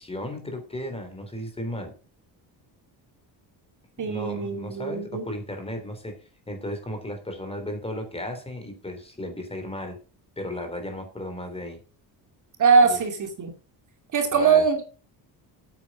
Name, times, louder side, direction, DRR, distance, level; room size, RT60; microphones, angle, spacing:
voice 1, 0.0-1.9 4.0-6.2 6.5-10.0 10.4-11.8 12.8-13.0 14.3-14.7, left 1 dB, 15° left, 6 dB, 3.4 m, -35 dB
voice 2, 4.0-5.2 12.6-13.5 14.1-14.8, right 5 dB, 45° right, 5 dB, 2.5 m, -21 dB
8.8 x 8.7 x 6.2 m, 0.37 s
cardioid pair, 135°, 42 cm